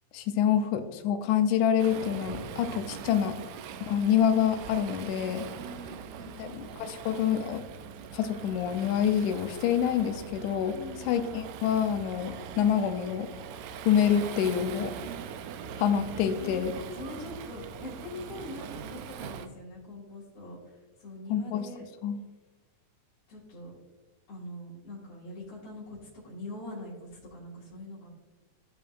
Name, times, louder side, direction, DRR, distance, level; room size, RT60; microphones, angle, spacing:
voice 1, 0.1-3.4 3.9-5.5 6.4-7.6 8.1-13.3 13.9-14.9 15.8-16.7 21.3-21.7 22.0-22.2, left 9 dB, 85° left, 7 dB, 2.0 m, -27 dB
Waves surf, 1.8-19.5, right 7 dB, 80° right, 1.8 m, -42 dB
voice 2, 5.5-6.6 10.7-11.2 16.3-21.8 23.3-23.8 24.3-28.1, left 1 dB, 50° left, -8 dB, 2.3 m, -43 dB
14.5 x 5.1 x 2.4 m, 1.2 s
omnidirectional pair, 3.4 m